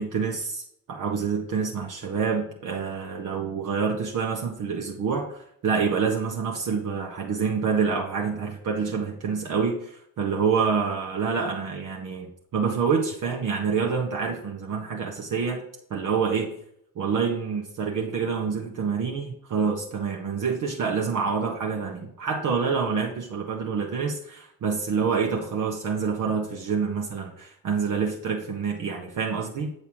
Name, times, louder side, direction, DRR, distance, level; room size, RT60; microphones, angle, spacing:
voice 1, 0.0-15.6 15.9-16.5 16.9-29.7, right 5 dB, 45° right, 1 dB, 1.2 m, -27 dB
8.2 x 5.5 x 4.5 m, 0.70 s
figure-of-eight pair, 40°, 43 cm